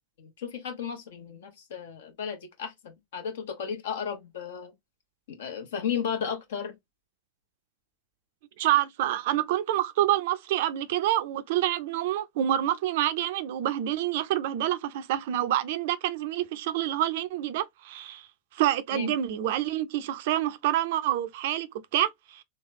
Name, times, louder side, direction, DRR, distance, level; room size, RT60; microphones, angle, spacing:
voice 1, 0.2-4.7 5.3-6.7 18.9-19.1, left 7 dB, 60° left, 1.0 m, -34 dB
voice 2, 8.6-18.3 18.5-22.4, right 13 dB, 50° right, 0.4 m, -27 dB
3.4 x 3.2 x 2.6 m
figure-of-eight pair, 90°, 0 cm